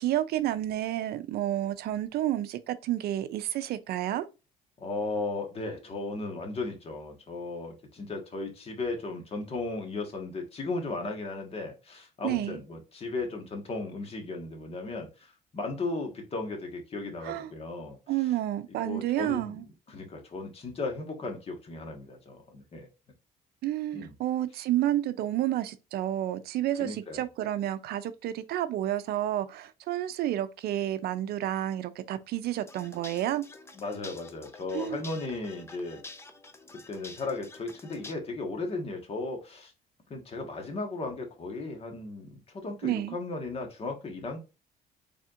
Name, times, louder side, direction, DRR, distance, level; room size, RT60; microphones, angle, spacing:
voice 1, 0.0-4.3 12.2-12.6 17.2-17.5 18.1-19.6 23.6-33.4 34.7-35.0 42.8-43.1, right 13 dB, 70° right, 0.5 m, -30 dB
voice 2, 4.8-18.0 18.8-19.6 19.9-22.9 23.9-24.1 26.8-27.2 33.7-36.0 36.7-39.7 40.1-44.4, left 3 dB, 35° left, 1.4 m, -36 dB
sound 1, 32.6-38.1, left 3 dB, 15° left, 0.6 m, -48 dB
4.3 x 3.5 x 2.5 m
cardioid pair, 110°, 17 cm